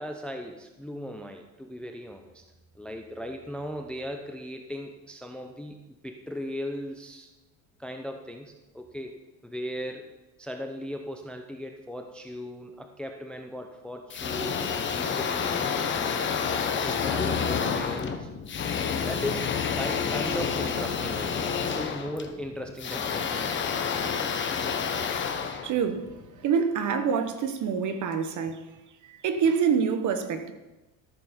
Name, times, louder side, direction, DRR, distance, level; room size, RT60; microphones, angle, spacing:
voice 1, 0.0-2.4 2.7-7.3 7.8-9.2 9.4-10.1 10.4-16.2 16.8-18.3 19.0-23.5 23.9-24.0, equal, ahead, 0.6 m, -38 dB
sound 1, 14.1-26.3, left 6 dB, 25° left, 1.0 m, -29 dB
voice 2, 25.6-28.7 29.0-30.5, right 6 dB, 40° right, 1.2 m, -26 dB
13.5 x 6.8 x 5.3 m
cardioid pair, 135°, 44 cm